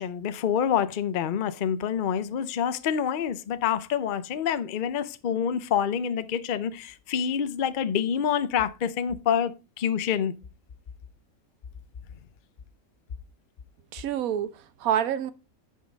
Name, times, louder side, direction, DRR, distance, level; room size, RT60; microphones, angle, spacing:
voice 1, 0.0-10.4, left 8 dB, 50° left, 0.6 m, -27 dB
voice 2, 13.9-15.3, right 10 dB, 85° right, 1.2 m, -27 dB
9.7 x 5.6 x 3.9 m
omnidirectional pair, 1.4 m